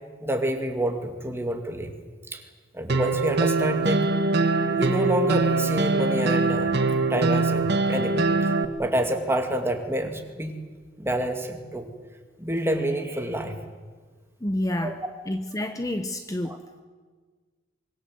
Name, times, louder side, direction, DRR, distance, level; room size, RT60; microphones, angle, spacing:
voice 1, 0.2-1.9 2.3-2.4 2.7-4.1 4.7-6.8 7.1-8.3 8.8-10.5 11.0-11.9 12.4-13.6 14.8-14.9 16.4-16.6, right 1 dB, 15° right, 4 dB, 2.5 m, -27 dB
sound 1, 2.9-8.7, right 3 dB, 60° right, 1.6 m, -23 dB
voice 2, 14.4-15.0 15.3-16.6, left 1 dB, 20° left, 7 dB, 0.9 m, -28 dB
25.0 x 23.0 x 7.9 m, 1.5 s
head